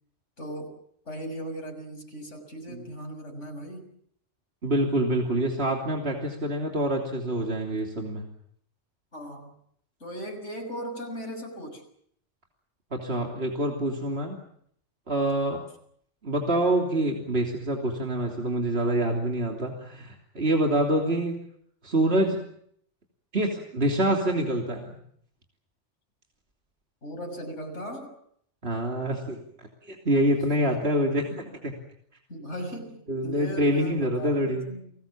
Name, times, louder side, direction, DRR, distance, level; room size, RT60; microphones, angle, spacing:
voice 1, 0.4-0.8 1.1-3.9 9.1-9.5 10.0-11.8 27.0-28.1 30.5-30.6 31.2-31.6 32.3-34.9, equal, 80° left, 3 dB, 6.9 m, -38 dB
voice 2, 4.6-8.3 12.9-14.4 15.1-15.6 16.2-21.4 21.8-22.4 23.3-25.0 28.6-29.4 29.8-31.2 31.6-31.7 33.1-34.7, right 1 dB, 60° right, 1 dB, 3.4 m, -26 dB
30.0 x 20.0 x 7.4 m, 0.67 s
omnidirectional pair, 1.2 m